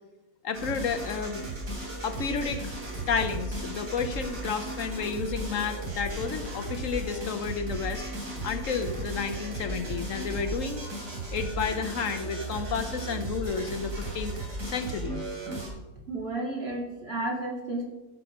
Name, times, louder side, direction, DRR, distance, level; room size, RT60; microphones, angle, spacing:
voice 1, 0.4-1.4 2.0-2.7 3.1-8.0 8.4-10.9 11.3-14.3 14.6-15.2, left 5 dB, 70° left, 9 dB, 1.1 m, -31 dB
sound 1, 0.5-15.7, right 1 dB, 70° right, 3.5 m, -35 dB
voice 2, 16.1-17.8, right 2 dB, 45° right, -2 dB, 3.1 m, -32 dB
14.5 x 6.2 x 5.2 m, 1.1 s
omnidirectional pair, 1.5 m